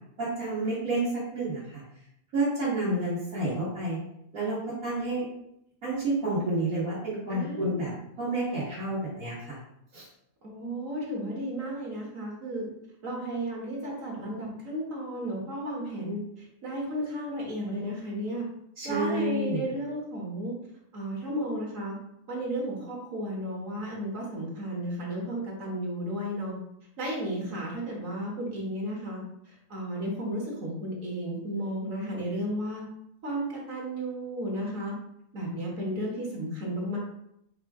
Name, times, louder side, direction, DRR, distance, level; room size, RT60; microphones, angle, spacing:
voice 1, 0.2-1.8 2.3-4.0 4.3-5.2 5.8-7.9 8.2-9.6 9.9-10.0 18.8-19.6, right 2 dB, 85° right, -11 dB, 2.0 m, -29 dB
voice 2, 7.3-7.8 10.4-12.6 13.0-16.2 16.6-18.5 18.8-20.5 20.9-21.9 22.3-26.5 27.0-29.2 29.7-32.8 33.2-34.9 35.3-37.0, right 1 dB, 65° right, -3 dB, 1.7 m, -33 dB
4.9 x 2.3 x 4.7 m, 0.76 s
omnidirectional pair, 1.5 m